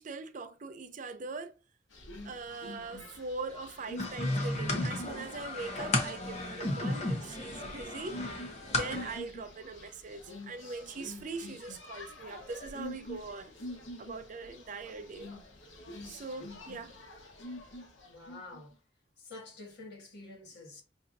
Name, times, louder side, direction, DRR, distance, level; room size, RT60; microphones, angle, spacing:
voice 1, 0.0-1.5 2.2-8.2 8.7-13.5 14.0-15.3 16.0-17.0, right 4 dB, 45° right, 0.4 m, -41 dB
sound 1, 1.9-18.6, left 1 dB, 90° left, 1.1 m, -46 dB
sound 2, 4.0-9.2, left 2 dB, 35° left, 0.9 m, -34 dB
voice 2, 18.0-18.8 19.2-20.8, left 2 dB, 60° left, 1.5 m, -48 dB
5.6 x 2.7 x 2.5 m
head